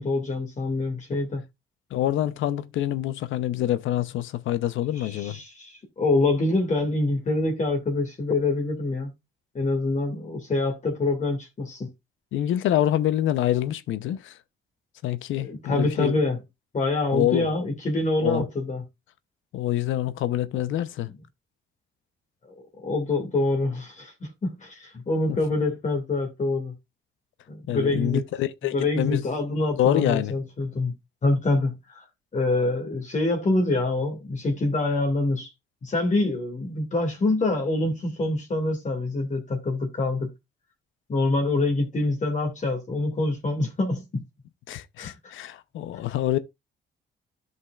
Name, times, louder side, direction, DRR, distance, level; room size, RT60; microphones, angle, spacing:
voice 1, 0.0-1.4 5.0-9.1 9.5-11.9 15.3-16.4 16.7-18.8 22.8-26.7 27.5-28.2 28.7-31.0 31.2-32.0 32.3-35.5 35.8-40.3 41.1-44.2 45.0-45.1, left 2 dB, 40° left, 2.2 m, -25 dB
voice 2, 1.9-5.4 12.3-14.3 15.0-16.1 17.1-17.5 18.2-18.4 19.5-21.1 27.7-29.2 29.8-30.3 44.7-46.4, left 12 dB, 80° left, 0.7 m, -26 dB
13.0 x 5.4 x 2.4 m
cardioid pair, 90°, 20 cm